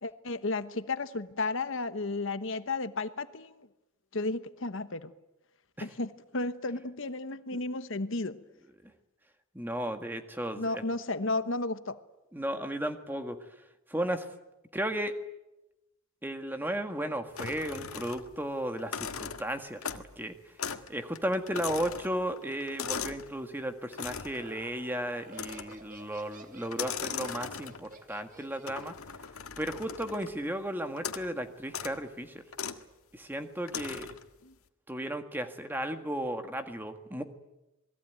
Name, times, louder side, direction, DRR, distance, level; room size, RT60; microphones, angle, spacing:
voice 1, 0.0-3.7 4.1-5.1 5.8-8.4 10.5-12.0 34.4-34.5, left 3 dB, 60° left, 1.2 m, -33 dB
voice 2, 9.5-10.8 12.3-13.4 13.9-14.3 14.7-15.1 16.2-20.3 20.9-28.9 29.6-32.4 33.1-34.1 34.9-37.2, right 1 dB, 10° right, 1.7 m, -34 dB
sound 1, 17.4-18.4 18.8-20.2 20.6-20.9 21.2-23.3 23.9-24.4 25.3-25.9 26.7-28.0 28.7-30.4 31.0-31.3 31.7-32.0 32.5-32.8 33.7-34.3, left 6 dB, 90° left, 1.7 m, -39 dB
Laughter, 23.8-29.0, right 3 dB, 40° right, 2.4 m, -52 dB
28.0 x 20.5 x 9.3 m
head